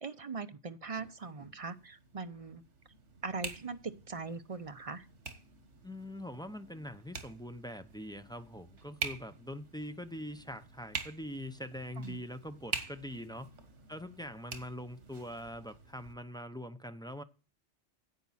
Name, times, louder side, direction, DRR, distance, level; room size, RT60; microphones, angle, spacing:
voice 1, 0.0-2.6 3.2-5.1 12.0-12.2, right 4 dB, 35° right, 0.7 m, -41 dB
sound 1, 1.0-16.1, right 4 dB, 90° right, 1.7 m, -46 dB
voice 2, 5.8-13.5 13.9-17.2, equal, 5° left, 0.6 m, -43 dB
10.5 x 8.4 x 4.1 m
omnidirectional pair, 1.2 m